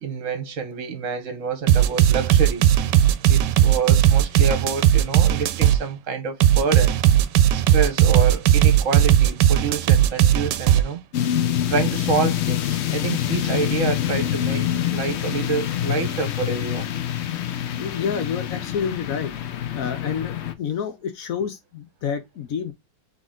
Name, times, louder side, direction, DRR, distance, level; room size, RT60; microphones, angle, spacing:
voice 1, 0.0-2.6 3.3-7.0 7.5-11.0 11.7-14.6 14.9-16.9, right 5 dB, 50° right, 1.4 m, -27 dB
sound 1, 1.7-5.8 6.4-10.8, right 11 dB, 85° right, 1.2 m, -16 dB
sound 2, 11.1-20.5, left 11 dB, 85° left, 0.5 m, -26 dB
voice 2, 17.8-19.3 19.8-22.7, left 7 dB, 60° left, 1.0 m, -28 dB
3.9 x 3.6 x 3.7 m
omnidirectional pair, 1.9 m